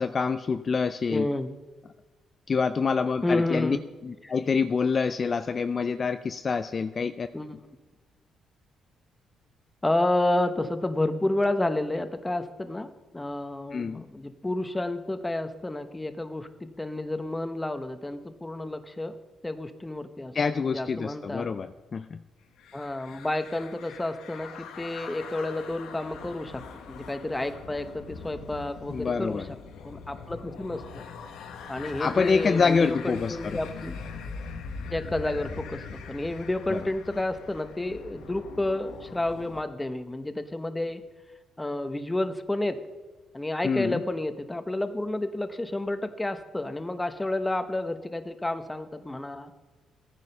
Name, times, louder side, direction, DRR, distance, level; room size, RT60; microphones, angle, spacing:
voice 1, 0.0-1.3 2.5-3.8 4.0-7.3 13.7-14.0 20.3-22.2 28.9-29.5 32.0-33.6 36.7-36.8 43.6-44.0, left 5 dB, 40° left, 9 dB, 0.4 m, -26 dB
voice 2, 1.1-1.5 3.2-3.8 4.2-4.3 7.3-7.5 9.8-19.1 19.4-21.5 22.7-29.4 29.8-31.0 31.7-34.0 34.9-41.0 41.6-42.8 43.3-49.5, left 1 dB, 15° left, 10 dB, 1.0 m, -30 dB
sound 1, 22.6-39.6, left 5 dB, 85° left, 1.2 m, -42 dB
14.0 x 9.6 x 5.6 m, 1.2 s
cardioid pair, 90°, 0 cm